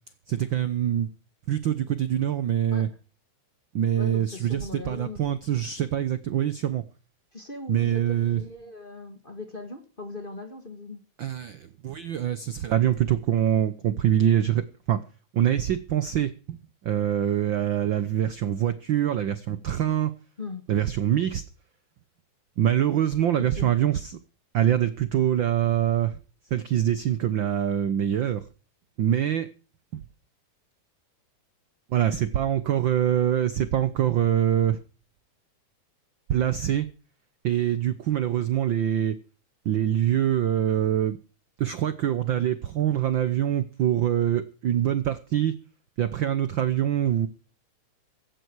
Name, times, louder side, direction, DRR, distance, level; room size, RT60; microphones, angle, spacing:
voice 1, 0.3-1.1 1.5-2.9 3.7-6.8 7.7-8.4 11.2-15.0 15.3-16.6 16.8-20.1 20.7-21.4 22.6-24.2 24.5-26.2 26.5-28.4 29.0-29.5 31.9-34.8 36.3-36.9 37.4-39.2 39.6-41.2 41.6-45.5 46.0-47.3, right 11 dB, 70° right, 13 dB, 1.1 m, -24 dB
voice 2, 4.0-5.2 7.3-11.0 20.4-20.6 23.4-23.7, left 3 dB, 20° left, 6 dB, 1.5 m, -39 dB
16.5 x 13.0 x 4.7 m, 0.37 s
omnidirectional pair, 3.4 m